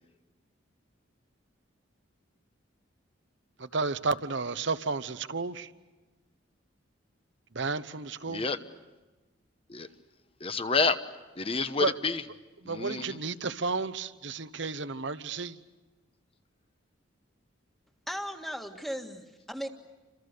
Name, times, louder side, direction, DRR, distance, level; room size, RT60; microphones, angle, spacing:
voice 1, 3.6-5.7 7.5-8.4 11.8-11.9 12.7-15.6, right 4 dB, 60° right, 1.0 m, -32 dB
voice 2, 8.3-8.6 9.7-9.9 10.4-11.0 11.4-12.2 12.6-13.2, left 4 dB, 30° left, 1.0 m, -29 dB
voice 3, 18.1-19.7, equal, ahead, 1.7 m, -37 dB
29.0 x 26.5 x 6.7 m
head